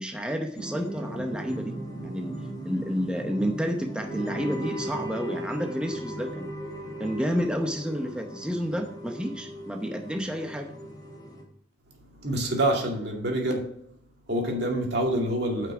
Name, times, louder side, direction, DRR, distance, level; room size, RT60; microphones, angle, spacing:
voice 1, 0.0-1.8 2.0-2.4 2.6-6.5 7.0-10.7, equal, 5° right, 3 dB, 0.7 m, -30 dB
sound 1, 0.6-11.4, right 1 dB, 20° left, 2.4 m, -37 dB
voice 2, 12.2-13.7 14.3-15.7, right 1 dB, 65° right, 1 dB, 2.3 m, -26 dB
9.3 x 5.9 x 6.1 m, 0.71 s
head